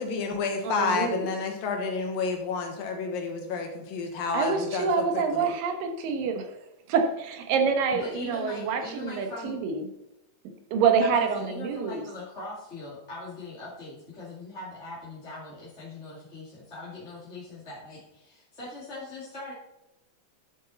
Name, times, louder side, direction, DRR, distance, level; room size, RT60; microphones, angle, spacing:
voice 1, 0.0-5.5, left 4 dB, 85° left, 3 dB, 3.4 m, -30 dB
voice 2, 0.6-1.3 4.3-6.5 6.9-9.8 10.7-12.0, right 5 dB, 85° right, 5 dB, 3.0 m, -26 dB
voice 3, 8.0-9.6 11.0-19.5, left 2 dB, 25° left, -8 dB, 2.2 m, -41 dB
11.0 x 8.0 x 4.2 m, 0.89 s
omnidirectional pair, 3.9 m